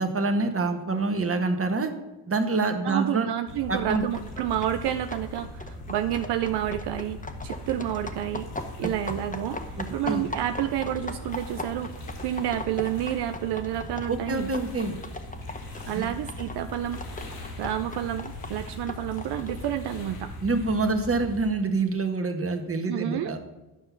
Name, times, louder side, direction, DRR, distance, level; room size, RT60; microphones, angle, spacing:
voice 1, 0.0-1.9 2.3-3.3 3.7-4.0 8.8-8.9 9.8-10.2 14.1-14.9 15.9-16.1 20.4-23.4, right 3 dB, 35° right, 6 dB, 1.7 m, -26 dB
voice 2, 2.8-8.5 8.8-9.6 9.9-11.9 12.2-14.5 15.9-17.0 17.6-20.3 22.9-23.3, right 12 dB, 75° right, 8 dB, 0.6 m, -29 dB
sound 1, 3.5-21.4, left 1 dB, 85° left, 2.9 m, -40 dB
sound 2, 3.9-19.7, left 2 dB, 20° left, 1.3 m, -39 dB
10.5 x 5.5 x 6.0 m, 1.1 s
supercardioid pair, 60°, 41 cm